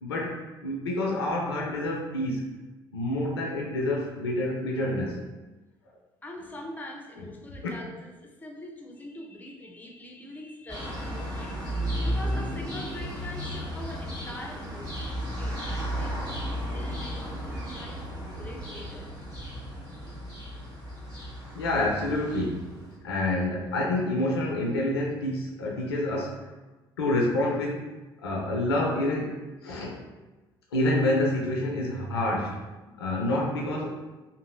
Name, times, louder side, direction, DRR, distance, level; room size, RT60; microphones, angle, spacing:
voice 1, 0.0-2.5 2.9-5.2 21.5-22.7 23.0-26.5 27.0-27.9 28.2-30.0 30.7-32.6 33.0-34.0, left 1 dB, 85° left, -1 dB, 0.4 m, -28 dB
voice 2, 6.2-19.1, left 1 dB, 15° left, 1 dB, 0.6 m, -44 dB
sound 1, 10.7-23.0, equal, 30° right, 1.5 m, -34 dB
2.9 x 2.6 x 2.5 m, 1.2 s
figure-of-eight pair, 50°, 13 cm